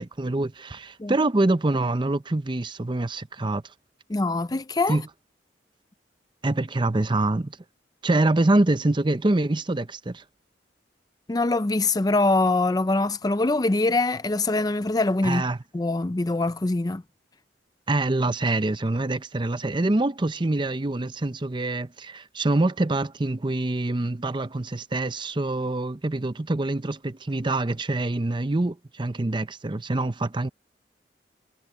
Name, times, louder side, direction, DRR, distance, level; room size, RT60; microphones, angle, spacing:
voice 1, 0.0-3.6 4.9-5.0 6.4-7.5 8.0-10.2 15.2-15.6 17.9-30.5, right 2 dB, 25° right, 0.7 m, -25 dB
voice 2, 4.1-5.0 11.3-15.4 15.7-17.0, left 2 dB, 20° left, 0.5 m, -23 dB
head